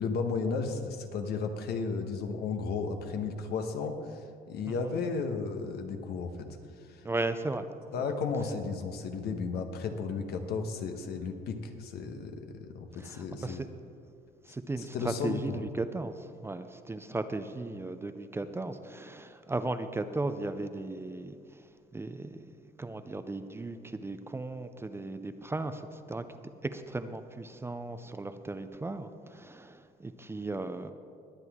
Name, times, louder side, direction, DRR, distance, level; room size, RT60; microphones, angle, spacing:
voice 1, 0.0-6.5 6.8-7.1 7.9-13.6 14.8-15.6, left 4 dB, 70° left, 6 dB, 1.2 m, -34 dB
voice 2, 7.0-7.7 8.0-8.1 13.0-13.7 14.5-16.2 16.4-21.3 21.9-22.5 22.8-26.2 26.7-30.9, right 2 dB, 15° right, 9 dB, 0.5 m, -36 dB
20.5 x 8.1 x 3.6 m, 2.3 s
cardioid pair, 110°, 17 cm